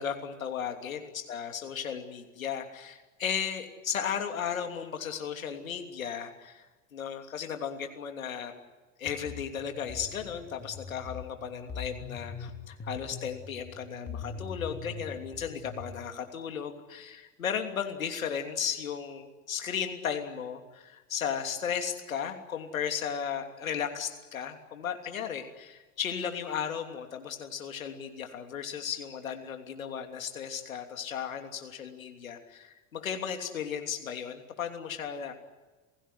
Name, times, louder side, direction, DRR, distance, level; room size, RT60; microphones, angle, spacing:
voice 1, 0.0-6.7 6.9-8.6 9.0-35.3, left 8 dB, 80° left, 5 dB, 3.1 m, -35 dB
sound 1, 9.1-15.9, left 5 dB, 25° left, 2.6 m, -42 dB
28.5 x 16.5 x 9.7 m, 1.2 s
hypercardioid pair, 85°, 40 cm